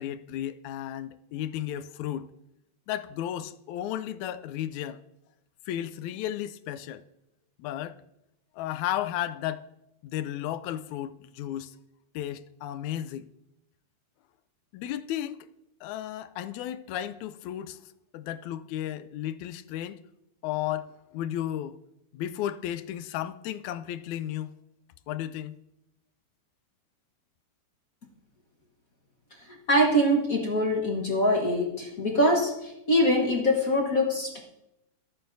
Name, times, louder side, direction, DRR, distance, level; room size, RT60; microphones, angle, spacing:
voice 1, 0.0-2.3 2.9-5.0 5.7-7.0 7.6-8.0 8.6-9.6 10.0-11.7 12.2-13.3 14.7-15.5 15.8-17.8 18.1-20.0 20.4-21.8 22.1-24.5 25.1-25.6, left 12 dB, 85° left, 2.0 m, -34 dB
voice 2, 29.7-34.4, equal, 45° left, 1.1 m, -24 dB
24.0 x 8.5 x 2.7 m
omnidirectional pair, 3.3 m